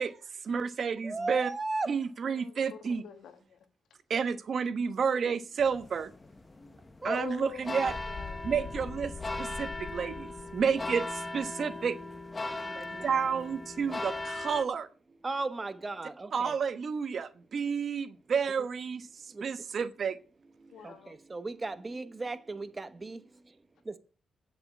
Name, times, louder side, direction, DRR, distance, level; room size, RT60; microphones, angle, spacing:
voice 1, 0.5-1.5 1.9-3.0 4.1-6.1 7.0-7.9 8.4-9.1 9.4-12.0 13.0-14.9 16.3-19.1 19.4-20.2, right 6 dB, 60° right, 1.1 m, -30 dB
voice 2, 1.0-1.9 7.0-7.2 12.8-13.4 15.2-16.6 20.8-23.2 23.9-24.0, right 3 dB, 25° right, 1.1 m, -36 dB
voice 3, 2.3-3.6 7.1-8.4 20.7-21.2, left 8 dB, 90° left, 1.7 m, -45 dB
sound 1, 5.6-14.6, left 2 dB, 25° left, 1.0 m, -39 dB
sound 2, 7.9-11.4, left 5 dB, 45° left, 0.6 m, -43 dB
9.4 x 7.7 x 8.3 m
cardioid pair, 95°, 0 cm